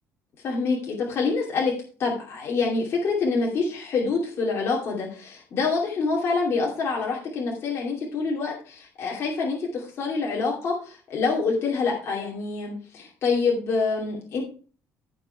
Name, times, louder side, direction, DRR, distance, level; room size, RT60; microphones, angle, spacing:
voice 1, 0.4-1.7 2.0-14.4, left 4 dB, 45° left, -2 dB, 2.6 m, -26 dB
13.5 x 4.9 x 4.6 m, 0.39 s
cardioid pair, 150°, 6 cm